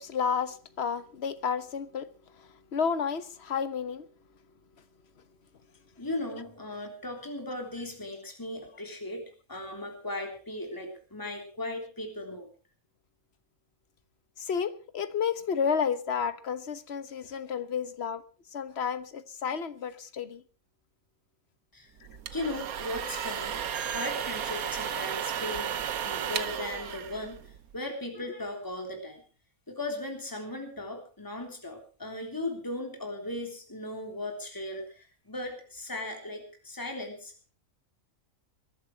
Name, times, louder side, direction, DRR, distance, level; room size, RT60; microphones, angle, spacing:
voice 1, 0.0-2.1 2.4-4.1 14.4-18.2 18.5-20.4, left 6 dB, 50° left, 1.3 m, -31 dB
voice 2, 6.0-12.5 21.7-21.9 22.3-23.6 23.9-25.7 26.0-29.2 29.7-37.5, left 1 dB, 15° left, 3.4 m, -37 dB
sound 1, 22.0-27.8, right 9 dB, 85° right, 1.4 m, -34 dB
22.0 x 11.5 x 4.6 m
omnidirectional pair, 1.5 m